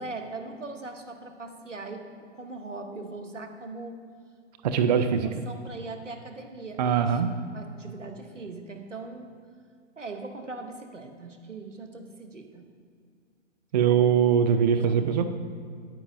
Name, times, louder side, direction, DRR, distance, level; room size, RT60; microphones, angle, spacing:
voice 1, 0.0-2.1 2.3-4.0 4.9-9.3 10.0-12.7 14.9-15.0, right 3 dB, 90° right, 5 dB, 1.0 m, -40 dB
voice 2, 4.6-5.3 6.8-7.3 13.7-15.3, right 7 dB, 35° right, 8 dB, 0.4 m, -22 dB
9.8 x 8.8 x 2.6 m, 2.2 s
figure-of-eight pair, 115°, 36 cm